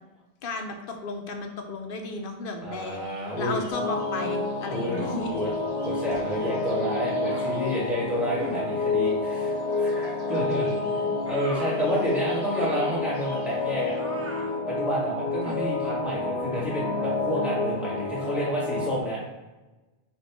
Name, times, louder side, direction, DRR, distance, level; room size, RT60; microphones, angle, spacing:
voice 1, 0.4-5.3 10.5-11.1, left 3 dB, 60° left, 4 dB, 0.8 m, -34 dB
voice 2, 2.6-3.6 4.7-5.1 5.3-5.5 5.8-10.7 11.2-13.9 14.7-19.2, equal, ahead, -7 dB, 1.3 m, -30 dB
sound 1, 2.9-14.0, right 1 dB, 80° right, 1.3 m, -47 dB
sound 2, 3.7-19.0, left 3 dB, 75° left, 1.1 m, -29 dB
sound 3, 4.9-5.4 6.1-6.3 7.3-7.6 8.4-8.7 10.3-10.6 11.2-11.9 12.5-13.1 14.0-14.6 15.4-15.7, right 2 dB, 20° right, 0.4 m, -40 dB
4.2 x 2.5 x 4.6 m, 1.1 s
omnidirectional pair, 1.1 m